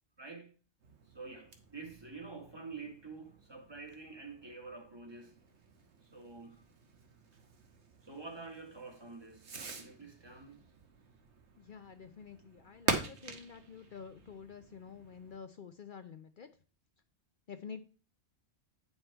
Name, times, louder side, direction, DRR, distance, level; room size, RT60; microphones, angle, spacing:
voice 1, 0.2-0.5 1.1-5.4 6.1-6.6 8.0-10.6, right 4 dB, 25° right, 1.3 m, -48 dB
Fireworks, 0.8-15.4, right 4 dB, 85° right, 1.5 m, -44 dB
voice 2, 11.6-16.5 17.5-17.8, left 6 dB, 55° left, 0.7 m, -49 dB
9.0 x 5.7 x 4.4 m
omnidirectional pair, 1.1 m